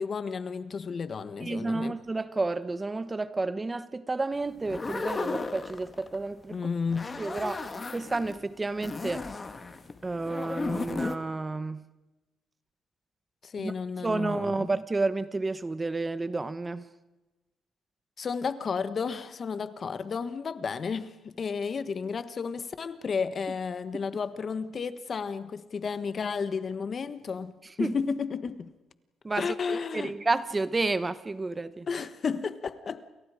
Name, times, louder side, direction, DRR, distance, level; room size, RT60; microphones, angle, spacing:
voice 1, 0.0-2.0 6.5-7.1 13.4-14.7 18.2-27.5 27.8-28.7 29.4-30.1 31.9-33.0, left 5 dB, 45° left, 1.4 m, -32 dB
voice 2, 1.4-6.6 7.2-9.2 10.0-11.8 13.6-13.7 14.0-16.9 27.8-27.9 29.2-31.9, right 3 dB, 20° right, 1.1 m, -31 dB
sound 1, 4.6-6.3 6.8-8.4 8.8-11.2, left 3 dB, 30° left, 1.9 m, -35 dB
29.0 x 28.5 x 5.0 m
cardioid pair, 90°, 0 cm